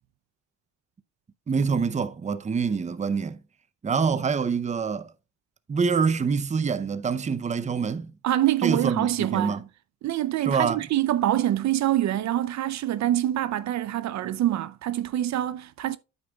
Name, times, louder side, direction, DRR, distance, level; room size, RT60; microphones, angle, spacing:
voice 1, 1.5-3.4 3.8-5.1 5.7-8.1 8.6-9.6 10.5-10.8, right 5 dB, 25° right, 0.6 m, -25 dB
voice 2, 8.2-9.6 10.0-16.0, right 13 dB, 65° right, 0.5 m, -25 dB
9.1 x 8.1 x 2.3 m
cardioid pair, 90°, 30 cm